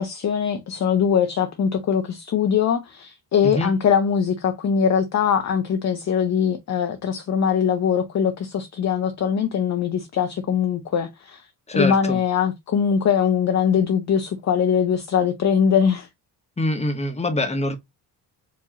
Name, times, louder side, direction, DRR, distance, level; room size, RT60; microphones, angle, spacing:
voice 1, 0.0-11.4 11.7-16.1, left 7 dB, 40° left, 0.7 m, -21 dB
voice 2, 3.4-3.8 11.7-12.2 16.6-17.8, left 1 dB, 15° left, 1.0 m, -24 dB
4.7 x 2.8 x 2.8 m
cardioid pair, 120°, 43 cm